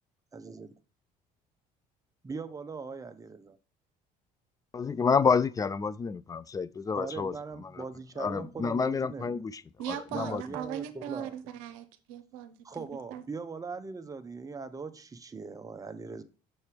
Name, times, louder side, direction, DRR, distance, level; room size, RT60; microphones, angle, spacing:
voice 1, 0.3-0.7 2.2-3.6 7.0-9.4 10.1-11.3 12.6-16.2, right 4 dB, 20° right, 0.7 m, -40 dB
voice 2, 4.7-7.8 8.2-9.6 9.9-10.4, left 5 dB, 20° left, 0.4 m, -29 dB
voice 3, 9.8-12.9 13.1-13.2, right 10 dB, 90° right, 0.7 m, -39 dB
6.7 x 3.3 x 4.4 m
supercardioid pair, 85°, 17 cm